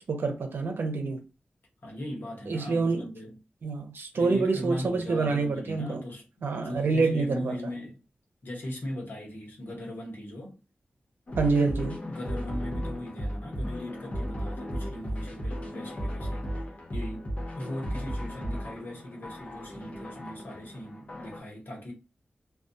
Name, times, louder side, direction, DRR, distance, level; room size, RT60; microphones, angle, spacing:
voice 1, 0.1-1.2 2.5-3.0 3.6-6.0 6.4-7.5 11.4-12.0, right 4 dB, 80° right, 0.6 m, -27 dB
voice 2, 1.8-3.4 4.1-8.0 8.4-10.6 12.1-21.9, left 1 dB, 65° left, 1.0 m, -39 dB
sound 1, 11.3-21.4, equal, 40° left, 0.8 m, -35 dB
2.3 x 2.3 x 2.6 m
wide cardioid pair, 110°, 4 cm